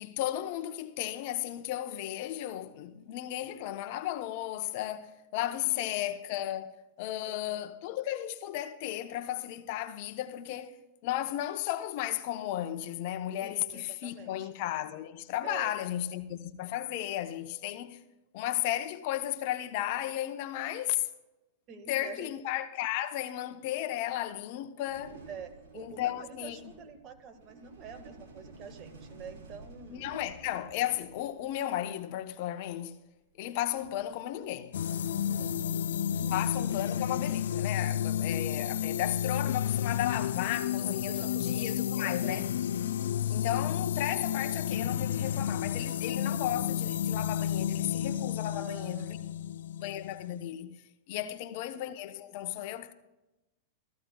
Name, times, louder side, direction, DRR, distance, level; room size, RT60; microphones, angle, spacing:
voice 1, 0.0-10.8 11.0-18.0 18.3-21.1 21.9-25.2 25.8-26.6 29.9-33.0 33.4-34.8 36.3-42.5 43.3-49.2 49.8-50.8 51.1-52.9, left 13 dB, 55° left, 0.9 m, -34 dB
voice 2, 5.5-6.0 7.1-7.6 13.4-14.5 15.4-15.8 21.7-22.3 25.3-30.1 35.2-35.6 36.1-36.4 40.8-42.4 48.5-49.5 51.1-51.4, right 6 dB, 40° right, 1.6 m, -47 dB
sound 1, 24.8-32.3 33.5-33.6 33.7-35.1 36.1-36.4 37.6-37.7 38.2-38.5 39.4-41.8 43.2-44.5, right 3 dB, 65° right, 4.0 m, -53 dB
sound 2, 34.7-50.5, left 9 dB, 75° left, 0.4 m, -31 dB
15.5 x 14.0 x 2.3 m
hypercardioid pair, 105°, 0 cm